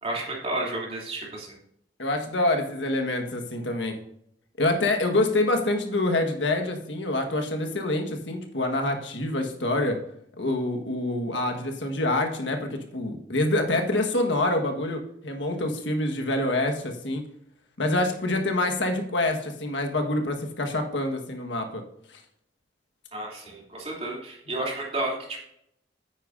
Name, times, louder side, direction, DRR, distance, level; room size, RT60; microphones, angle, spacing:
voice 1, 0.0-1.6 23.1-25.4, right 2 dB, 35° right, -2 dB, 3.0 m, -31 dB
voice 2, 2.0-4.0 4.6-10.0 10.4-17.3 17.8-21.8 22.1-22.2, left 2 dB, 75° left, 4 dB, 1.5 m, -26 dB
9.8 x 9.0 x 2.6 m, 0.72 s
head